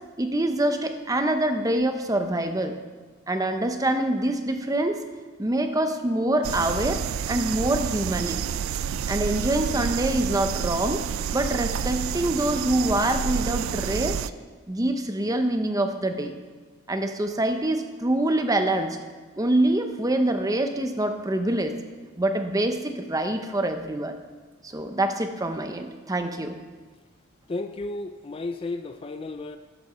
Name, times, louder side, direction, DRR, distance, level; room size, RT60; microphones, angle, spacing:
voice 1, 0.2-2.8 3.3-5.0 5.4-8.4 9.1-11.1 11.3-14.2 14.7-16.3 16.9-19.0 19.4-21.8 22.2-24.1 24.6-26.5, right 1 dB, 15° right, 6 dB, 0.8 m, -25 dB
sound 1, 6.4-14.3, right 8 dB, 80° right, 0.4 m, -29 dB
voice 2, 27.5-29.6, left 2 dB, 25° left, 8 dB, 0.4 m, -33 dB
11.5 x 6.7 x 6.8 m, 1.4 s
head